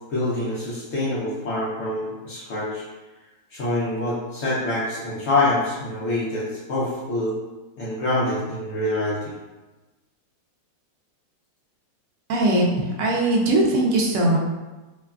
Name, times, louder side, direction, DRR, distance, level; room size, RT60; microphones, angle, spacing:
voice 1, 0.1-2.8 3.5-7.3 7.8-9.3, left 2 dB, 70° left, -9 dB, 0.7 m, -25 dB
voice 2, 12.3-14.4, right 1 dB, 80° right, -3 dB, 0.7 m, -20 dB
3.2 x 2.2 x 2.3 m, 1.2 s
omnidirectional pair, 2.0 m